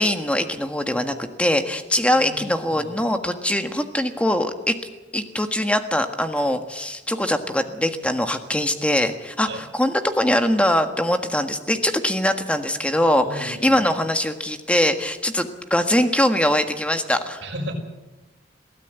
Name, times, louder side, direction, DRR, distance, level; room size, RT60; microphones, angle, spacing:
voice 1, 0.0-4.7 5.1-17.4, left 1 dB, 5° left, 7 dB, 1.5 m, -22 dB
voice 2, 2.2-3.2 9.5-9.6 13.2-13.9 17.4-17.7, equal, 70° right, 2 dB, 5.4 m, -35 dB
22.5 x 16.5 x 8.2 m, 1.1 s
head